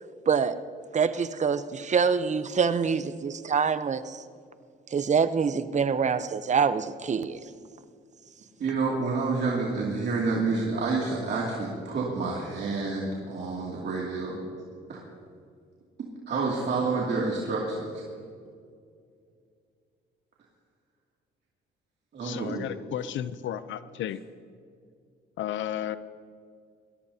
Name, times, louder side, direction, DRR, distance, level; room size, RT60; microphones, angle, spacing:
voice 1, 0.3-0.6 0.9-4.2 4.9-7.4, right 6 dB, 35° right, 13 dB, 0.8 m, -25 dB
voice 2, 8.6-14.4 14.9-15.0 16.3-18.0 22.1-22.6, right 3 dB, 60° right, -4 dB, 2.5 m, -28 dB
voice 3, 22.2-24.2 25.4-26.0, left 11 dB, 75° left, 13 dB, 0.6 m, -33 dB
21.5 x 17.0 x 2.8 m, 2.3 s
cardioid pair, 90°, 20 cm